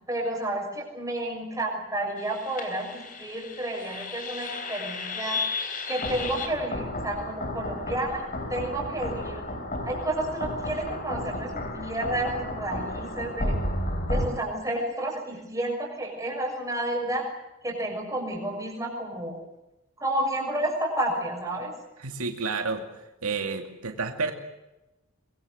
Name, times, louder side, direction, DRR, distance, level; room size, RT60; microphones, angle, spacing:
voice 1, 0.1-5.4 5.9-9.4 9.8-13.6 14.1-17.3 17.6-19.4 20.0-21.7, right 1 dB, 15° right, 0 dB, 6.6 m, -31 dB
sound 1, 2.2-14.3, left 2 dB, 40° left, 3.8 m, -33 dB
voice 2, 22.0-22.8 23.2-24.3, right 4 dB, 80° right, 5 dB, 2.4 m, -30 dB
23.5 x 22.5 x 8.0 m, 0.98 s
head